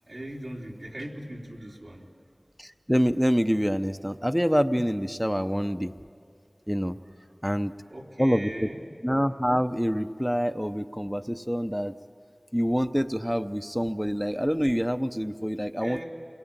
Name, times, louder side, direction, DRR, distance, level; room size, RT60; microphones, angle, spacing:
voice 1, 0.0-2.1 7.0-7.1 7.9-8.8 15.8-16.0, right 1 dB, 80° right, -3 dB, 3.6 m, -39 dB
voice 2, 2.6-5.9 6.7-7.0 7.4-7.7 8.2-8.7 9.0-11.9 12.5-16.0, equal, 5° right, 9 dB, 0.6 m, -26 dB
28.5 x 21.5 x 8.9 m, 2.3 s
wide cardioid pair, 40°, 0 cm